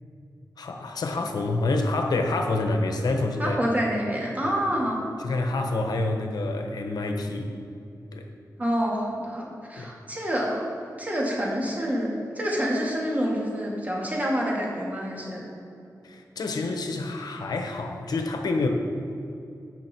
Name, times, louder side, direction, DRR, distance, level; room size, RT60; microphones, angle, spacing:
voice 1, 0.6-3.6 5.2-7.5 8.1-8.3 9.8-9.9 16.0-18.7, left 2 dB, 90° left, 4 dB, 1.0 m, -27 dB
voice 2, 3.4-5.0 8.6-10.7 11.0-12.1 12.3-15.4, equal, 25° right, -3 dB, 2.5 m, -27 dB
16.0 x 6.0 x 4.6 m, 2.7 s
wide cardioid pair, 90°, 7 cm